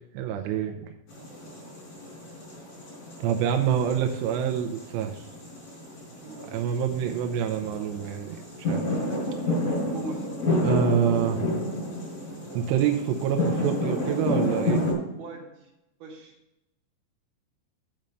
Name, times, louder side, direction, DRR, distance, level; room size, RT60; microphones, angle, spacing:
voice 1, 0.1-0.9 3.2-5.2 6.5-8.9 10.6-11.4 12.5-14.8, right 8 dB, 80° right, 5 dB, 2.6 m, -26 dB
sound 1, 1.1-14.9, left 1 dB, 40° left, 5.2 m, -30 dB
voice 2, 6.2-6.6 9.9-10.3 15.2-15.7 16.0-16.4, right 2 dB, 65° right, 0 dB, 2.8 m, -42 dB
8.7 x 5.3 x 7.7 m, 0.88 s
omnidirectional pair, 5.6 m